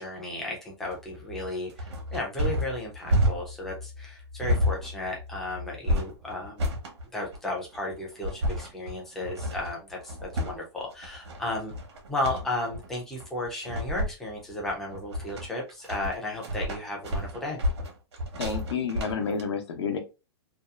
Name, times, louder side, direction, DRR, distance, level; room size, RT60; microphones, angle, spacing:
voice 1, 0.0-6.7 7.1-11.7 12.1-17.6, left 2 dB, ahead, -2 dB, 0.3 m, -34 dB
sound 1, 0.8-19.4, equal, 90° right, 0.9 m, -31 dB
voice 2, 18.4-20.0, left 5 dB, 75° left, 5 dB, 0.8 m, -30 dB
2.7 x 2.3 x 2.3 m, 0.29 s
supercardioid pair, 180°, 14 cm